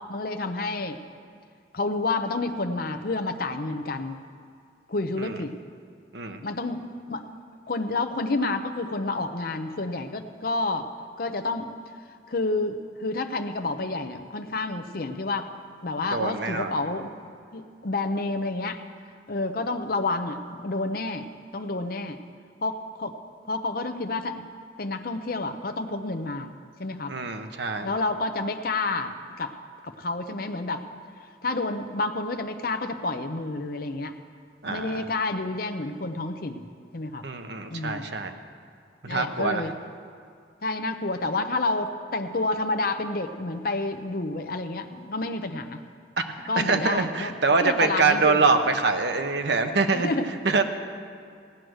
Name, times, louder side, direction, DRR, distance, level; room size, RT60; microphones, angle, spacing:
voice 1, 0.1-1.0 1.7-4.2 4.9-5.5 6.4-7.2 7.7-10.9 11.2-11.7 12.3-15.5 15.8-18.8 19.3-21.3 21.5-22.2 22.6-23.2 23.4-24.5 24.8-26.5 26.8-27.1 27.8-29.5 29.8-30.8 31.4-34.1 34.6-36.6 36.9-37.2 37.7-38.0 39.1-39.7 40.6-45.8 46.5-47.3 47.6-48.4 49.9-50.3, left 2 dB, 50° left, 6 dB, 0.7 m, -29 dB
voice 2, 16.1-16.8 27.1-27.9 34.6-35.0 37.2-38.3 39.0-39.6 46.2-46.3 46.6-50.1 50.4-50.6, right 4 dB, 65° right, 6 dB, 1.0 m, -24 dB
16.5 x 9.3 x 6.4 m, 2.3 s
head